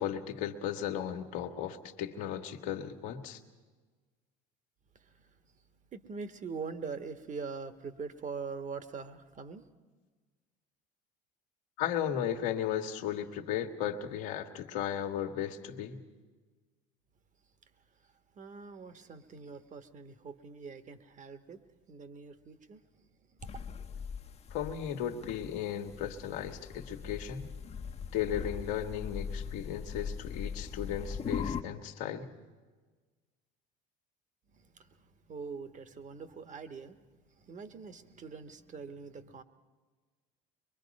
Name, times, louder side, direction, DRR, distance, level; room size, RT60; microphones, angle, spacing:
voice 1, 0.0-3.4 11.8-16.0 24.5-27.5 28.1-32.3, left 9 dB, 80° left, 4 dB, 1.5 m, -35 dB
voice 2, 4.9-5.3 5.9-9.6 18.3-21.6 21.9-22.8 23.4-23.7 34.5-37.0 37.4-39.4, right 5 dB, 40° right, 11 dB, 1.4 m, -43 dB
sound 1, 23.4-31.6, left 6 dB, 35° left, 0.8 m, -40 dB
23.5 x 22.5 x 5.3 m, 1.4 s
supercardioid pair, 85°, 19 cm